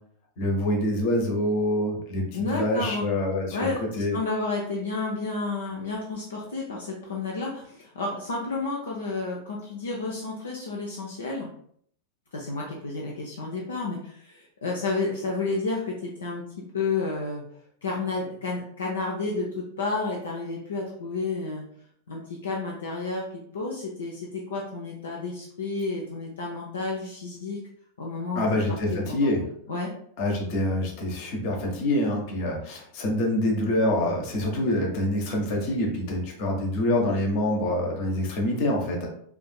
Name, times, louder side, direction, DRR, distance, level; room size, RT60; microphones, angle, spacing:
voice 1, 0.4-3.7 4.0-4.2 28.3-29.4 30.2-39.1, left 1 dB, 45° left, 1 dB, 0.9 m, -26 dB
voice 2, 2.3-3.1 3.5-11.5 12.3-16.4 16.7-17.4 17.8-21.6 22.1-23.3 23.5-27.6 28.0-28.6 28.9-29.9, left 3 dB, 70° left, -2 dB, 0.6 m, -31 dB
4.8 x 2.5 x 2.3 m, 0.64 s
figure-of-eight pair, 90°, 0 cm